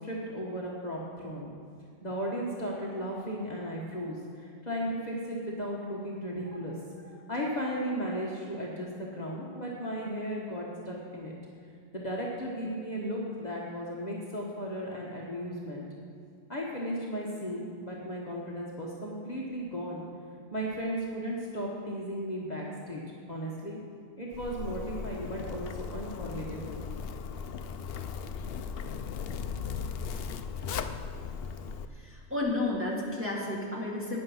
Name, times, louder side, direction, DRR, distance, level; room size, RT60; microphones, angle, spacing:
voice 1, 0.0-1.5 2.0-11.4 11.9-15.8 16.5-20.0 20.5-23.0 23.3-23.8 24.2-26.8, equal, 35° left, -4 dB, 1.4 m, -35 dB
Zipper (clothing), 24.3-31.9, left 6 dB, 60° left, 0.7 m, -37 dB
voice 2, 31.9-34.2, left 2 dB, 10° right, -5 dB, 2.0 m, -32 dB
12.0 x 9.2 x 5.5 m, 2.3 s
omnidirectional pair, 1.3 m